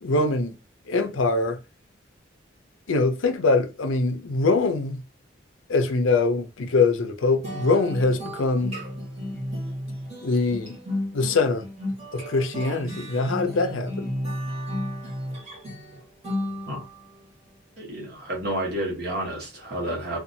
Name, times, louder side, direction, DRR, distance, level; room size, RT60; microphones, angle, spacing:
voice 1, 0.0-0.5 0.9-1.6 2.9-5.0 5.7-8.7 10.2-10.8 11.1-11.6 12.1-14.1, left 3 dB, 80° left, 0.5 m, -23 dB
sound 1, 7.4-17.1, equal, 35° right, 1.3 m, -33 dB
voice 2, 17.8-20.2, right 1 dB, 50° right, 1.2 m, -30 dB
2.7 x 2.3 x 2.6 m
head